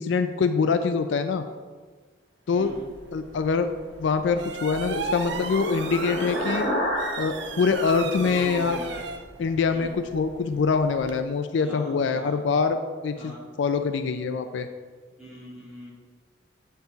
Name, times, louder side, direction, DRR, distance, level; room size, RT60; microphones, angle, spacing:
voice 1, 0.0-1.4 2.5-2.7 3.1-3.7 4.0-6.7 7.2-8.8 9.4-13.3 13.6-14.7, left 5 dB, 65° left, 9 dB, 0.4 m, -24 dB
voice 2, 2.5-2.9 8.2-9.1 9.7-9.9 11.6-12.4 13.2-13.5 15.2-15.9, equal, 5° right, -8 dB, 1.8 m, -40 dB
sound 1, 2.6-11.2, right 4 dB, 60° right, 0.5 m, -37 dB
sound 2, 4.2-8.9, equal, 50° left, 1.9 m, -32 dB
8.3 x 4.5 x 3.9 m, 1.5 s
head